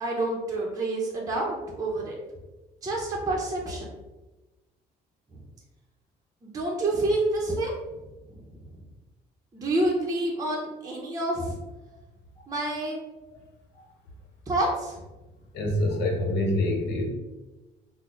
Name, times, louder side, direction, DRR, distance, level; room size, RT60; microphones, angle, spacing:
voice 1, 0.0-2.2 2.8-3.9 5.3-5.4 6.4-7.7 8.4-8.7 9.5-11.6 12.5-13.0 14.5-15.0, right 2 dB, 20° right, -3 dB, 0.6 m, -28 dB
voice 2, 15.5-17.1, left 1 dB, 80° left, 1 dB, 0.8 m, -26 dB
3.8 x 2.0 x 3.0 m, 1.1 s
cardioid pair, 110°, 17 cm